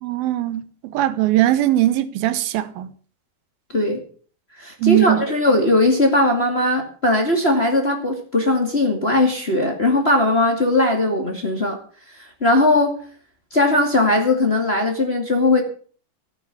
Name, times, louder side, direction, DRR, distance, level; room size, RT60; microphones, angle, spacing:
voice 1, 0.0-2.9 4.8-5.2, right 14 dB, 90° right, 2.8 m, -20 dB
voice 2, 4.6-11.8 12.2-12.9 13.5-15.6, left 2 dB, 20° left, 2.0 m, -19 dB
14.5 x 9.5 x 7.1 m
omnidirectional pair, 4.1 m